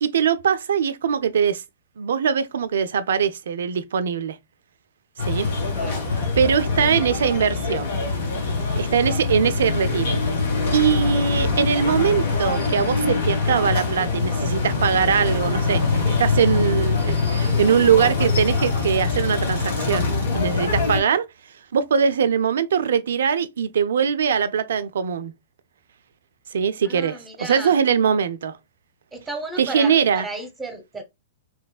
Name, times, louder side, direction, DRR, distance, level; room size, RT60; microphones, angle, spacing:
voice 1, 0.0-1.6 2.0-4.4 5.2-5.5 6.4-8.0 8.8-10.2 10.7-21.3 21.7-25.3 26.5-28.6 29.6-30.2, right 7 dB, 65° right, 0.4 m, -22 dB
sound 1, 5.2-21.0, left 4 dB, 60° left, 1.5 m, -23 dB
voice 2, 5.7-6.1 26.8-27.7 29.1-31.0, right 2 dB, 10° right, 1.1 m, -34 dB
3.2 x 3.0 x 2.4 m
figure-of-eight pair, 105°, 0 cm